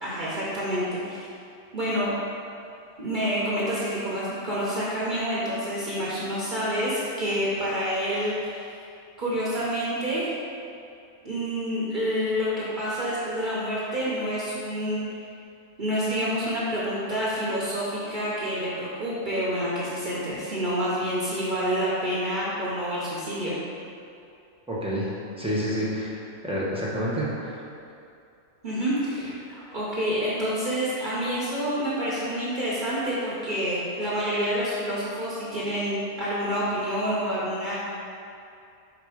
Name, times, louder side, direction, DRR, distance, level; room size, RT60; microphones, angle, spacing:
voice 1, 0.0-1.3 1.7-2.1 3.0-8.7 9.2-10.3 11.2-15.0 15.8-23.5 28.6-37.7, equal, 40° right, -8 dB, 0.9 m, -28 dB
voice 2, 24.7-25.1 25.4-26.2 26.4-27.6, equal, 5° right, -7 dB, 0.8 m, -28 dB
5.0 x 3.7 x 4.9 m, 2.6 s
omnidirectional pair, 1.4 m